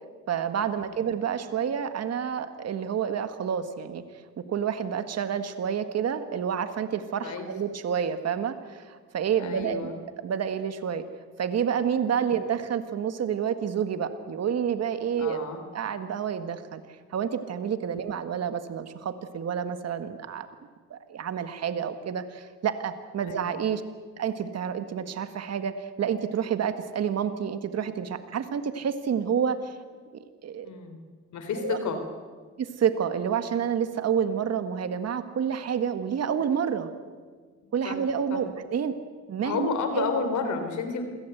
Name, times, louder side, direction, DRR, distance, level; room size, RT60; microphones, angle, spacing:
voice 1, 0.3-4.0 4.4-11.0 11.4-15.4 15.7-16.8 17.1-20.5 20.9-23.8 24.2-29.7 30.4-30.7 31.6-31.8 32.6-36.9 37.7-38.9 39.3-39.7 39.9-40.1, right 8 dB, 55° right, 9 dB, 1.8 m, -29 dB
voice 2, 9.4-10.0 15.2-15.6 18.0-18.1 23.3-23.5 30.6-31.0 31.3-32.0 37.8-38.0 38.3-38.4 39.4-41.0, left 5 dB, 70° left, 7 dB, 4.1 m, -31 dB
26.5 x 17.0 x 8.1 m, 1.5 s
cardioid pair, 90°, 30 cm